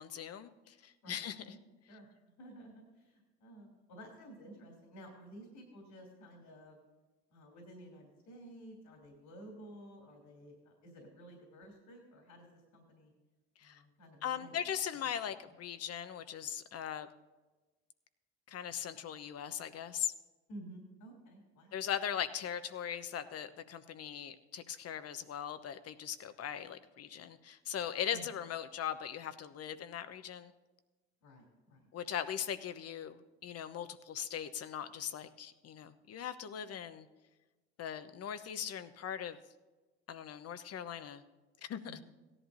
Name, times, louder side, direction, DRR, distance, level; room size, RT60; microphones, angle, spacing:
voice 1, 0.0-1.5 13.6-13.8 14.2-17.1 18.5-20.1 21.7-30.5 31.9-37.1 37.8-39.4 40.1-41.2 41.6-41.8, left 9 dB, 45° left, 12 dB, 1.0 m, -40 dB
voice 2, 1.0-1.6 1.9-2.1 2.4-6.8 7.3-13.1 13.6-14.6 15.0-15.1 15.4-15.5 20.5-21.8 28.1-28.3 31.2-31.9 41.8-42.0, right 1 dB, 65° left, 1 dB, 3.2 m, -53 dB
17.0 x 11.0 x 2.7 m, 1.2 s
hypercardioid pair, 65°, 33 cm